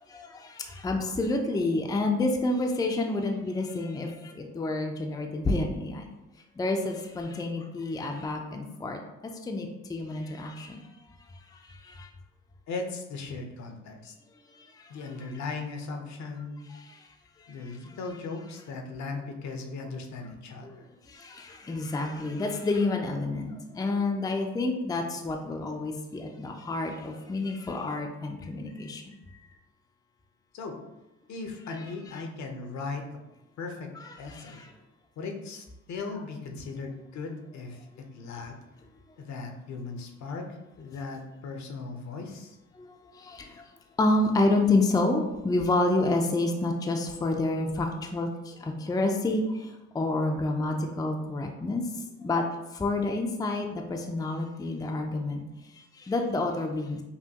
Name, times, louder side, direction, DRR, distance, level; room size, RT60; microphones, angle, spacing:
voice 1, 0.1-6.0 6.6-10.8 11.7-12.1 14.8-14.9 16.7-17.0 17.6-17.7 20.6-20.8 21.1-29.0 29.3-29.4 34.0-34.7 42.8-42.9 43.1-43.6 44.0-51.8 52.2-52.4 52.7-55.4 56.0-57.0, left 2 dB, 10° left, 3 dB, 0.4 m, -29 dB
voice 2, 12.7-14.1 14.9-16.7 17.5-20.9 30.5-30.8 31.3-33.1 33.6-33.9 34.2-34.7 35.2-37.8 38.1-38.6 39.2-40.5 40.8-42.6, left 4 dB, 65° left, 4 dB, 0.7 m, -37 dB
5.6 x 2.2 x 2.8 m, 0.96 s
cardioid pair, 90°, 30 cm